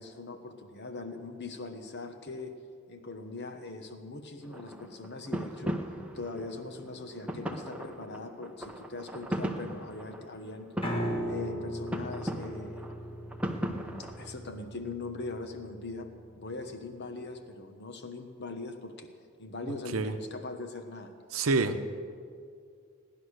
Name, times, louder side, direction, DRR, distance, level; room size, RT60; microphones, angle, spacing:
voice 1, 0.0-2.5 2.9-5.8 6.1-10.7 11.2-12.8 13.6-19.1 19.4-21.1, left 3 dB, 50° left, 7 dB, 1.2 m, -41 dB
sound 1, 4.4-14.3, equal, 5° right, 0.8 m, -38 dB
Piano, 10.8-17.0, equal, 25° left, 1.5 m, -38 dB
voice 2, 21.3-21.9, right 3 dB, 75° right, 7 dB, 0.8 m, -27 dB
17.5 x 10.5 x 6.4 m, 2.3 s
head